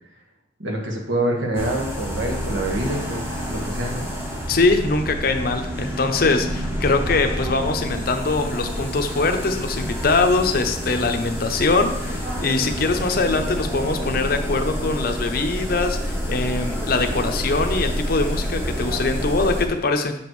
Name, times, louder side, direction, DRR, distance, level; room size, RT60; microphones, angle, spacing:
voice 1, 0.6-4.1, right 1 dB, 75° right, 1 dB, 1.3 m, -26 dB
sound 1, 1.5-19.7, equal, 15° right, 0.9 m, -28 dB
voice 2, 4.5-20.1, left 3 dB, 50° left, 6 dB, 0.6 m, -22 dB
7.0 x 6.0 x 3.2 m, 0.82 s
head